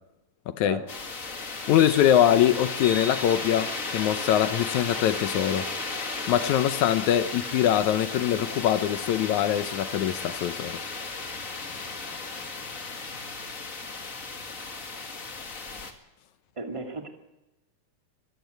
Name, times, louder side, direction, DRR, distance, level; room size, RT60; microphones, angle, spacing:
voice 1, 0.5-0.8 1.7-5.7 6.3-10.8, left 11 dB, 70° left, 2.0 m, -23 dB
sound 1, 0.9-15.9, left 3 dB, 30° left, 1.6 m, -34 dB
voice 2, 16.6-17.1, right 3 dB, 10° right, 1.7 m, -34 dB
23.5 x 14.0 x 8.1 m
omnidirectional pair, 3.8 m